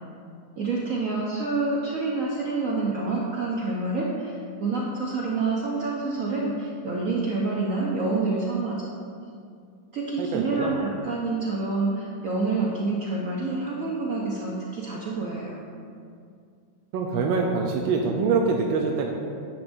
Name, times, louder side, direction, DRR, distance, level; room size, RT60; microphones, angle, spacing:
voice 1, 0.6-8.8 9.9-15.6, right 3 dB, 55° right, -4 dB, 1.0 m, -27 dB
voice 2, 10.2-10.7 16.9-19.1, right 4 dB, 90° right, 0 dB, 1.4 m, -24 dB
10.5 x 7.8 x 2.6 m, 2.3 s
omnidirectional pair, 2.1 m